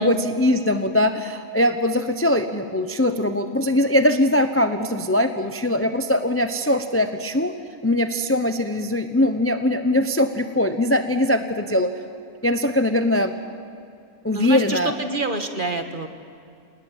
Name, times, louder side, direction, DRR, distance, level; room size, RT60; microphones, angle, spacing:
voice 1, 0.0-7.5 7.8-11.9 12.4-13.3 14.2-14.9, left 1 dB, 10° left, 7 dB, 0.7 m, -21 dB
voice 2, 14.3-16.1, right 2 dB, 35° right, 6 dB, 1.6 m, -27 dB
28.0 x 19.5 x 7.4 m, 2.5 s
omnidirectional pair, 1.6 m